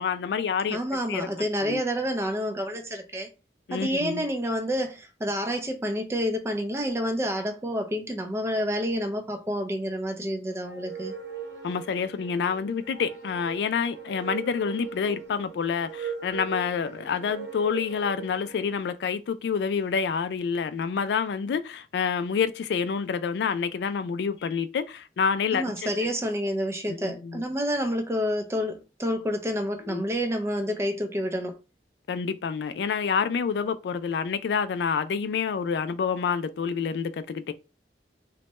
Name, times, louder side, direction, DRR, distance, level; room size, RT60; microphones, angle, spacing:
voice 1, 0.0-0.8 1.1-1.3 1.6-1.8 3.7-4.3 11.6-25.9 27.0-27.4 29.9-30.0 32.1-37.5, left 6 dB, 70° left, 0.3 m, -28 dB
voice 2, 0.7-3.3 3.7-11.1 25.5-31.6, equal, 15° right, 0.4 m, -29 dB
sound 1, 10.6-18.7, right 6 dB, 85° right, 0.8 m, -39 dB
3.1 x 2.2 x 2.9 m
head